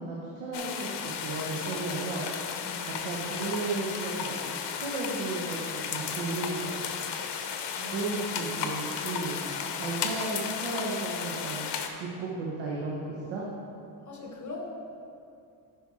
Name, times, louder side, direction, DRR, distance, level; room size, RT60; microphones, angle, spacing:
voice 1, 0.0-2.6 3.0-7.1 7.9-13.4, right 3 dB, 85° right, -4 dB, 1.3 m, -34 dB
sound 1, 0.5-11.9, left 7 dB, 60° left, 0.9 m, -34 dB
voice 2, 7.7-8.1 14.0-14.8, left 2 dB, 40° left, 0 dB, 1.2 m, -41 dB
9.7 x 5.6 x 4.3 m, 2.6 s
cardioid pair, 85°, 46 cm